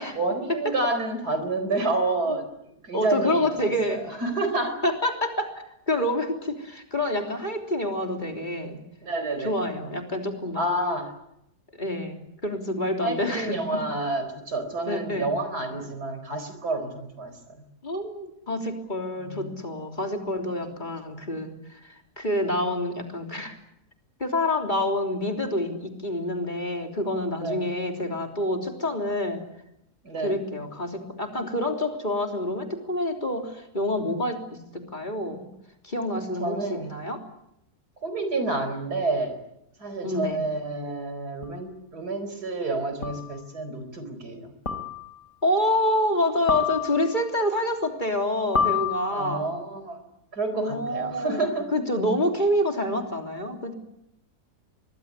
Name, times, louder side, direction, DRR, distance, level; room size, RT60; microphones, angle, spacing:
voice 1, 0.1-2.5 2.8-4.8 9.0-9.5 10.5-11.1 13.0-17.7 19.2-19.5 27.4-27.6 30.0-30.3 36.4-36.9 38.0-39.4 39.8-44.5 49.1-50.0 50.3-51.7, right 2 dB, 80° right, 9 dB, 4.9 m, -29 dB
voice 2, 2.9-4.1 4.8-8.8 9.4-10.6 11.8-13.8 14.9-15.3 17.8-23.6 24.2-29.4 30.2-35.5 35.8-37.2 40.0-40.4 45.4-49.5 50.5-53.7, left 1 dB, 30° left, 3 dB, 3.5 m, -27 dB
sound 1, 41.4-41.5 43.0-43.4 44.7-45.2 46.5-47.3 48.6-49.5, left 6 dB, 60° left, 3.3 m, -28 dB
25.0 x 21.0 x 9.5 m, 0.80 s
omnidirectional pair, 1.6 m